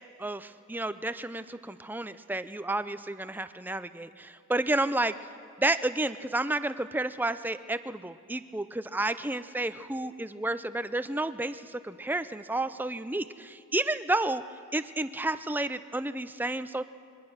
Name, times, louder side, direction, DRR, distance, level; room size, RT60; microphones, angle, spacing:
voice 1, 0.2-5.2 5.6-14.4 14.7-16.8, right 2 dB, 10° right, 12 dB, 0.5 m, -31 dB
25.5 x 22.5 x 6.4 m, 2.4 s
head